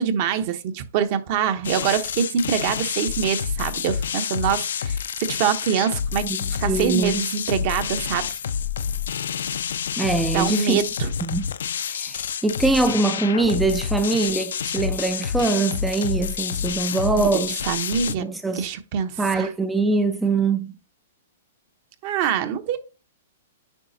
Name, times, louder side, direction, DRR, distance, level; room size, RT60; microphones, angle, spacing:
voice 1, 0.0-6.2 6.6-8.4 10.3-11.1 17.1-17.3 17.6-18.3 18.5-19.5 22.0-22.8, right 8 dB, 45° right, 1.0 m, -24 dB
sound 1, 1.6-18.2, left 8 dB, 80° left, 0.5 m, -28 dB
voice 2, 6.2-7.3 10.0-10.8 11.2-11.5 11.9-17.6 18.2-18.7 19.2-20.8, right 3 dB, 5° right, 0.4 m, -23 dB
9.3 x 5.0 x 2.7 m
hypercardioid pair, 150°, 0 cm